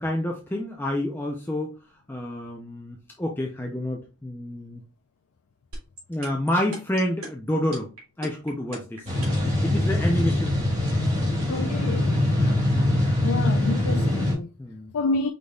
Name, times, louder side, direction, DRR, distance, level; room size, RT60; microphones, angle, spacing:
voice 1, 0.0-1.8 2.1-4.8 6.1-7.9 8.2-9.1 9.6-10.7 14.6-14.9, left 1 dB, 10° left, 0.5 m, -28 dB
sound 1, 5.7-9.5, right 1 dB, 90° right, 2.6 m, -37 dB
sound 2, 9.1-14.3, left 1 dB, 30° right, 2.0 m, -23 dB
voice 2, 11.5-12.3 13.2-14.5 14.9-15.3, left 3 dB, 80° left, 0.4 m, -28 dB
5.1 x 4.0 x 2.3 m
head